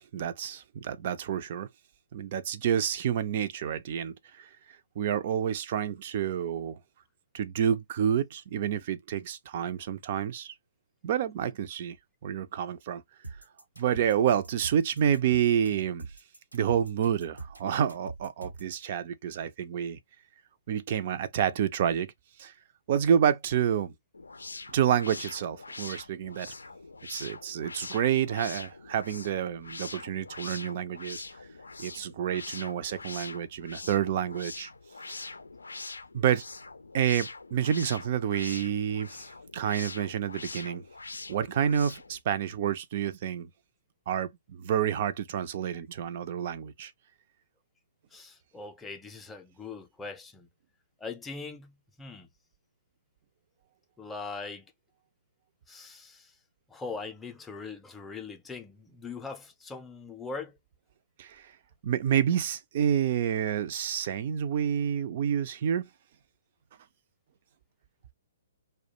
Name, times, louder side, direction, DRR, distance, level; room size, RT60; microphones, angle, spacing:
voice 1, 0.0-1.7 2.1-4.5 5.0-6.8 7.3-10.5 11.0-12.0 12.2-13.0 13.8-16.1 16.5-20.0 20.7-22.1 22.4-22.5 22.9-23.9 24.7-26.5 27.1-31.2 31.8-34.7 36.1-36.4 36.9-39.2 39.5-40.8 41.3-43.5 44.1-46.9 61.2-61.5 61.8-65.9, right 9 dB, 45° right, 0.3 m, -29 dB
sound 1, 13.2-18.8, right 3 dB, 90° right, 0.9 m, -43 dB
sound 2, 24.1-42.2, left 3 dB, 80° left, 0.4 m, -43 dB
voice 2, 48.1-50.5 51.0-52.3 54.0-54.6 55.7-56.3 56.7-60.6, left 4 dB, 10° left, 0.5 m, -41 dB
2.2 x 2.1 x 2.8 m
figure-of-eight pair, 125°, 0 cm